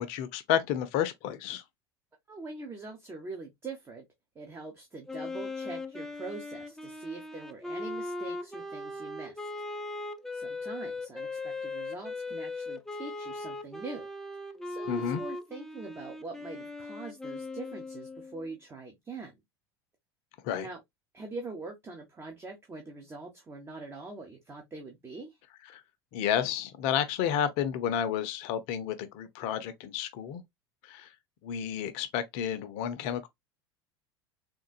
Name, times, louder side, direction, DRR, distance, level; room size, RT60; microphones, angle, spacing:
voice 1, 0.0-1.6 14.9-15.2 20.4-20.7 25.7-25.8 26.1-30.4 30.9-31.1 31.4-33.3, left 9 dB, 45° left, 0.6 m, -31 dB
voice 2, 2.3-4.0 4.3-9.5 10.3-14.1 14.6-19.3 20.6-20.8 21.1-25.4, right 3 dB, 20° right, 0.8 m, -43 dB
Wind instrument woodwind instrument, 5.1-18.5, left 2 dB, 5° left, 0.4 m, -39 dB
3.7 x 2.5 x 2.4 m
figure-of-eight pair, 75°, 14 cm